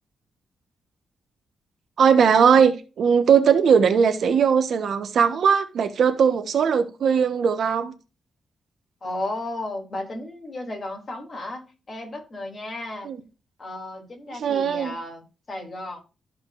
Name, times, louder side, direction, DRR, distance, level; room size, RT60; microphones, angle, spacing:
voice 1, 2.0-7.9 13.0-13.2 14.3-14.9, right 7 dB, 65° right, 1.3 m, -19 dB
voice 2, 9.0-13.1 13.6-16.0, left 2 dB, 35° left, 3.3 m, -34 dB
13.5 x 5.3 x 2.6 m
cardioid pair, 115°, 0 cm